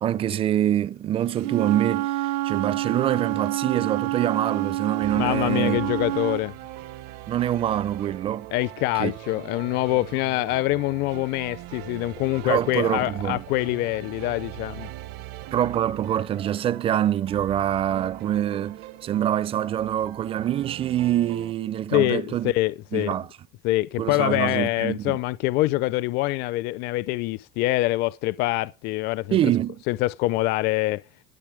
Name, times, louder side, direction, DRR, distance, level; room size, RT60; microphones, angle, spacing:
voice 1, 0.0-5.9 7.3-8.5 9.0-9.1 12.4-13.4 15.5-22.5 22.9-23.3 24.0-25.2 29.3-29.8, right 11 dB, 30° right, 0.5 m, -25 dB
Wind instrument woodwind instrument, 1.4-6.4, right 16 dB, 85° right, 0.8 m, -27 dB
sound 1, 5.0-21.5, right 16 dB, 55° right, 0.9 m, -41 dB
voice 2, 5.2-6.5 8.5-14.9 21.9-23.2 23.6-29.4 29.9-31.0, left 18 dB, 55° left, 0.5 m, -25 dB
12.0 x 8.1 x 5.0 m
cardioid pair, 145°, 20 cm